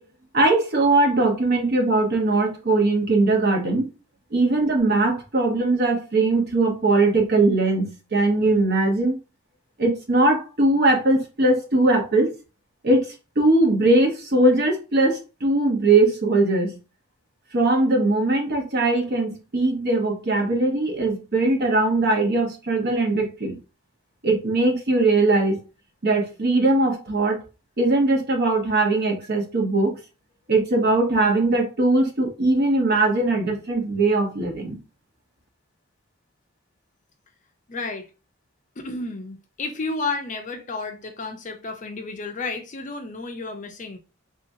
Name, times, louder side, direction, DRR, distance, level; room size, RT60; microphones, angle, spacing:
voice 1, 0.3-3.9 4.3-9.2 9.8-12.3 12.8-16.8 17.5-23.6 24.2-25.6 26.0-27.4 27.8-29.9 30.5-34.8, right 2 dB, 50° right, 1.0 m, -20 dB
voice 2, 37.7-38.1 38.8-44.0, left 3 dB, 35° left, 0.5 m, -31 dB
3.4 x 2.8 x 2.7 m
head